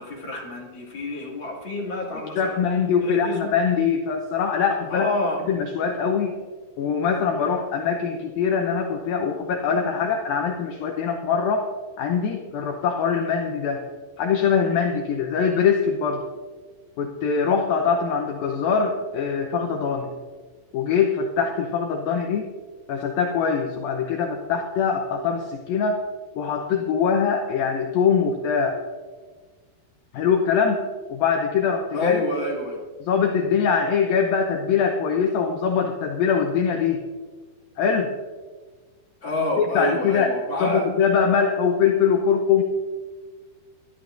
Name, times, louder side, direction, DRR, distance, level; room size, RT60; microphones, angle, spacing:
voice 1, 0.0-2.6 3.0-3.5 4.9-5.4 31.9-32.8 39.2-40.9, left 2 dB, 35° left, -3 dB, 2.3 m, -27 dB
voice 2, 2.4-5.1 5.5-6.3 6.8-11.7 12.0-13.8 14.2-16.2 17.0-20.1 20.7-22.5 22.9-26.0 26.4-28.8 30.1-30.8 31.1-32.2 33.0-37.0 37.8-38.1 39.6-40.3 40.6-42.6, left 6 dB, 75° left, 2 dB, 2.2 m, -23 dB
24.5 x 12.5 x 2.6 m, 1.4 s
omnidirectional pair, 5.2 m